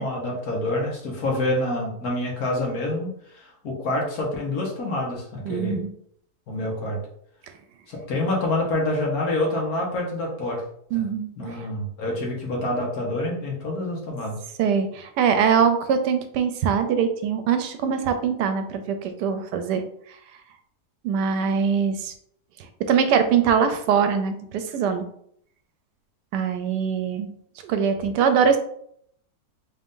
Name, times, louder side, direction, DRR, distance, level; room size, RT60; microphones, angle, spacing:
voice 1, 0.0-5.8 6.5-7.0 7.9-10.6 10.9-11.0 11.4-14.4, left 1 dB, 65° left, -1 dB, 1.6 m, -27 dB
voice 2, 5.5-5.9 10.9-11.3 14.6-19.8 21.0-22.1 22.9-25.0 26.3-27.3 27.6-28.6, right 7 dB, 80° right, 8 dB, 1.2 m, -22 dB
4.0 x 2.5 x 3.6 m, 0.67 s
omnidirectional pair, 1.8 m